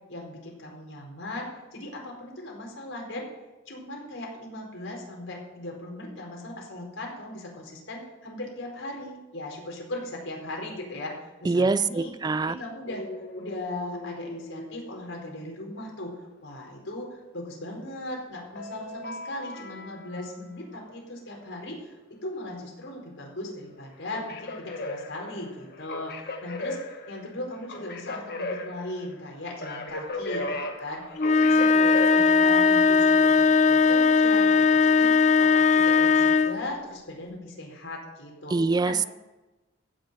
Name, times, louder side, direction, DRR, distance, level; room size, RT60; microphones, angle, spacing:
voice 1, 0.1-3.3 3.7-12.1 12.4-13.0 13.4-16.1 16.4-30.5 30.8-33.3 33.7-35.1 35.4-38.5 38.8-39.0, left 1 dB, 85° left, -1 dB, 4.4 m, -38 dB
voice 2, 11.4-12.6 38.5-39.1, right 3 dB, 20° right, 16 dB, 0.3 m, -24 dB
sound 1, 12.9-15.8 18.6-20.3 23.9-32.8, left 2 dB, 55° left, 1.4 m, -37 dB
sound 2, 31.2-36.6, left 4 dB, 40° left, 0.5 m, -19 dB
15.5 x 6.7 x 7.9 m, 1.1 s
head